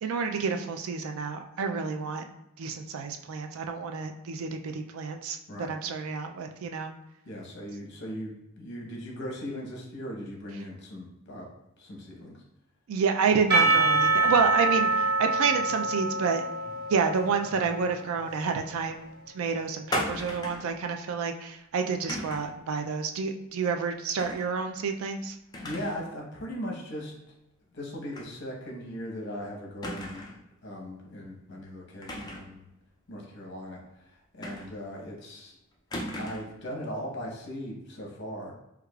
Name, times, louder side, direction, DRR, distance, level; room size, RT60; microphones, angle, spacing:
voice 1, 0.0-2.3 2.6-5.4 5.7-6.9 12.9-16.4 16.9-19.1 19.3-25.4, right 5 dB, 75° right, 5 dB, 0.3 m, -29 dB
voice 2, 7.2-11.5 11.8-12.4 14.3-14.4 25.6-27.1 27.7-30.3 30.6-32.6 33.1-35.6 36.2-38.5, equal, 55° left, -1 dB, 0.9 m, -38 dB
Percussion / Church bell, 13.5-18.7, right 3 dB, 50° right, 1.1 m, -26 dB
sound 1, 19.9-20.7 22.1-22.6 24.2-24.5 24.9-25.0 25.5-26.1 26.4-26.5 28.1-28.3 28.7-28.8 29.8-30.4 32.0-32.6 34.4-35.0 35.9-36.6, left 1 dB, 20° left, 0.3 m, -36 dB
4.7 x 2.3 x 2.3 m, 0.87 s
head